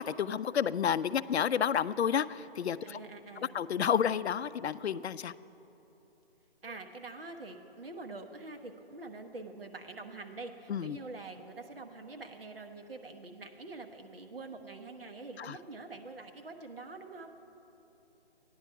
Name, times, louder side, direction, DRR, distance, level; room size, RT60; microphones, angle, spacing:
voice 1, 0.0-3.0 3.5-5.3 10.7-11.0 15.4-15.6, left 8 dB, 80° left, 16 dB, 0.5 m, -30 dB
voice 2, 2.8-3.6 6.6-17.3, right 3 dB, 60° right, 5 dB, 1.1 m, -45 dB
14.5 x 10.0 x 4.6 m, 2.9 s
hypercardioid pair, 180°, 32 cm